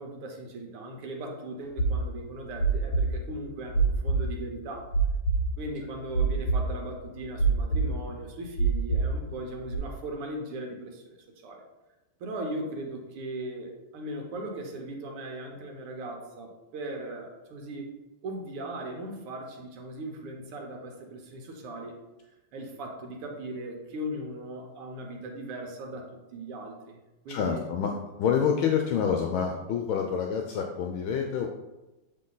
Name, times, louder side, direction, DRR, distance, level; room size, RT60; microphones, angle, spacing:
voice 1, 0.0-4.9 5.6-11.6 12.2-17.9 18.2-21.9 22.5-26.0 26.3-27.0 27.3-27.7, right 1 dB, 90° right, 2 dB, 1.9 m, -38 dB
sound 1, 1.8-9.8, right 4 dB, 45° left, 3.0 m, -26 dB
voice 2, 27.3-31.5, left 7 dB, 75° left, 3 dB, 1.3 m, -27 dB
7.7 x 3.9 x 3.9 m, 1.0 s
omnidirectional pair, 2.4 m